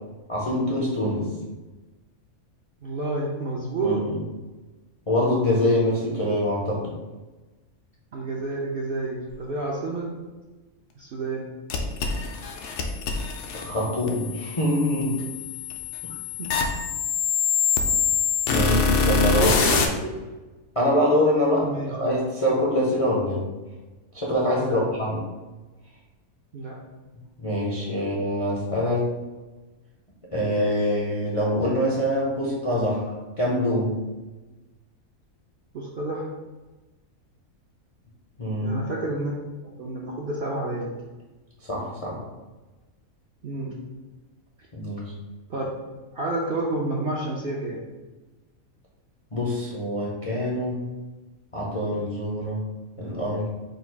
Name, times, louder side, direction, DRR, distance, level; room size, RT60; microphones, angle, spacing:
voice 1, 0.3-1.3 3.8-4.2 5.1-7.0 13.5-15.2 18.5-19.8 20.8-23.4 24.1-25.2 27.4-29.1 30.3-34.0 38.4-38.8 41.6-42.2 44.7-45.1 49.3-50.8 51.5-52.7 53.0-53.5, left 1 dB, 40° left, -5 dB, 0.4 m, -24 dB
voice 2, 2.8-4.0 8.1-10.1 11.0-11.5 16.4-16.6 19.4-19.8 20.0-20.2 21.6-21.9 24.5-24.8 26.5-26.7 35.7-36.3 38.6-39.3 39.8-40.9 43.4-43.7 45.5-45.6 46.1-47.8, right 2 dB, 60° right, -3 dB, 0.6 m, -29 dB
sound 1, 11.7-19.9, left 5 dB, 65° left, 0.8 m, -25 dB
3.9 x 2.3 x 4.5 m, 1.2 s
omnidirectional pair, 1.5 m